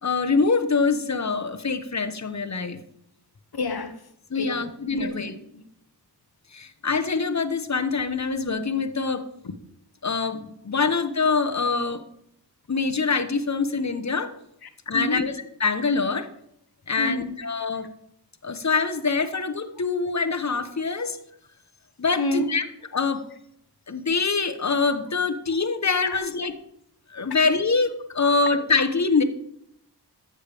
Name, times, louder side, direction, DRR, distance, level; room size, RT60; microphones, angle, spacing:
voice 1, 0.0-2.8 4.3-5.3 6.5-9.2 10.0-12.0 12.7-14.3 14.9-15.3 15.6-16.3 16.9-17.9 18.4-21.2 22.0-22.6 22.9-23.2 23.9-26.5 27.1-29.2, left 4 dB, 40° left, 1.0 m, -24 dB
voice 2, 3.5-5.7 9.4-9.5 14.6-15.3 17.0-17.9 22.2-22.5 26.0-26.2 28.2-28.3, left 2 dB, 60° left, 1.1 m, -31 dB
13.0 x 6.7 x 3.5 m
cardioid pair, 40°, 42 cm